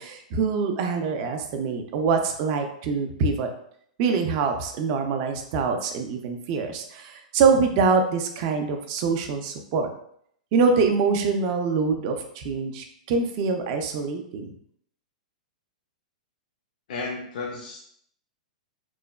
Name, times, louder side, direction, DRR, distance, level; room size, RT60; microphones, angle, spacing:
voice 1, 0.0-3.5 4.0-9.9 10.5-14.5, right 4 dB, 45° right, 4 dB, 0.4 m, -24 dB
voice 2, 16.9-17.8, left 3 dB, 70° left, -1 dB, 0.5 m, -33 dB
3.0 x 2.1 x 2.2 m, 0.68 s
hypercardioid pair, 125°, 4 cm